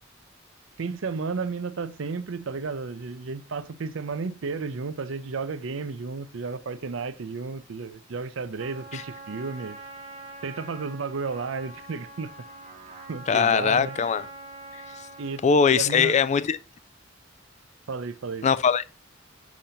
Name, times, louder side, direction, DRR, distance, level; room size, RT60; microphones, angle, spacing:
voice 1, 0.8-9.8 10.4-12.3 13.1-14.0 15.2-15.4 15.7-16.1 17.9-18.5, right 4 dB, 80° right, 0.5 m, -33 dB
Trumpet, 8.6-15.5, right 2 dB, 35° right, 1.0 m, -44 dB
voice 2, 13.3-14.3 14.7-14.8 15.4-16.6 18.4-18.8, left 6 dB, 35° left, 0.3 m, -21 dB
7.2 x 2.8 x 5.1 m
head